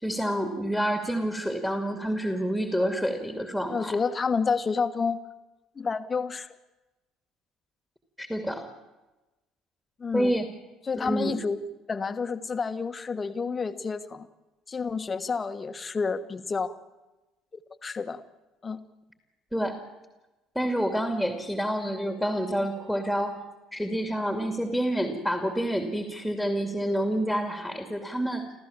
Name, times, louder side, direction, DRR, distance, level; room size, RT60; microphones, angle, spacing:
voice 1, 0.0-4.0 8.2-8.7 10.1-10.4 10.9-11.4 19.5-19.8 20.5-23.4 23.7-28.5, equal, ahead, 5 dB, 2.6 m, -28 dB
voice 2, 3.7-5.2 5.7-6.5 10.0-10.3 10.9-11.6 11.9-14.3 14.7-16.8 17.8-18.2 18.6-18.8, left 5 dB, 25° left, 11 dB, 1.3 m, -29 dB
28.0 x 15.0 x 7.3 m, 1.1 s
figure-of-eight pair, 55°, 0 cm